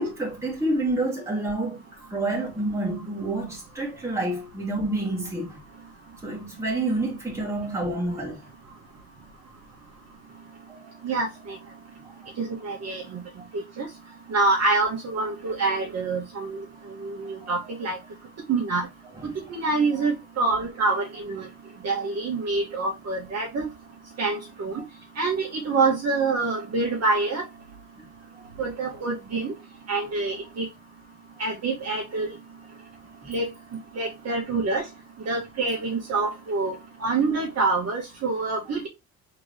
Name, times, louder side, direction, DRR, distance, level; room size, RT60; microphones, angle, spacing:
voice 1, 0.0-5.6 6.2-8.4 10.7-10.9 17.4-17.5 19.1-19.4 28.0-28.1 28.4-28.5, right 2 dB, 5° right, 2.2 m, -28 dB
voice 2, 11.0-11.6 12.4-13.2 13.8-13.9 14.3-18.0 18.5-18.9 19.2-21.5 21.8-23.7 24.2-24.8 25.2-27.4 28.6-29.5 29.9-30.7 31.4-32.3 33.3-33.5 33.9-34.8 35.3-38.9, right 3 dB, 45° right, 1.6 m, -26 dB
3.8 x 3.8 x 3.3 m
cardioid pair, 135°, 37 cm